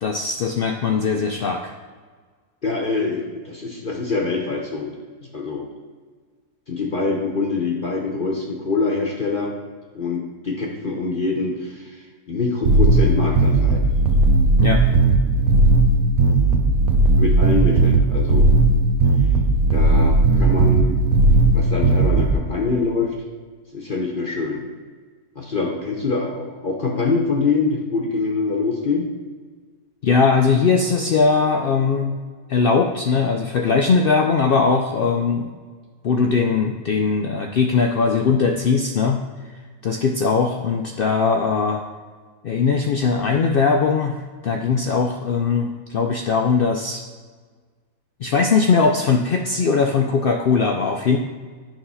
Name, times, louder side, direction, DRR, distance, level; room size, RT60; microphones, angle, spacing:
voice 1, 0.0-1.7 14.6-14.8 30.0-32.2 32.5-35.5 36.0-39.2 39.8-41.8 42.4-47.0 48.2-51.2, left 5 dB, 85° left, 3 dB, 0.5 m, -20 dB
voice 2, 2.6-4.9 5.3-5.7 6.7-9.5 9.9-13.8 17.2-18.5 19.7-21.0 21.3-23.1 23.7-24.6 25.4-29.1, left 4 dB, 40° left, 0 dB, 0.9 m, -24 dB
sound 1, 12.6-22.3, right 2 dB, 75° right, 1.2 m, -16 dB
9.0 x 3.6 x 5.5 m, 1.5 s
omnidirectional pair, 1.6 m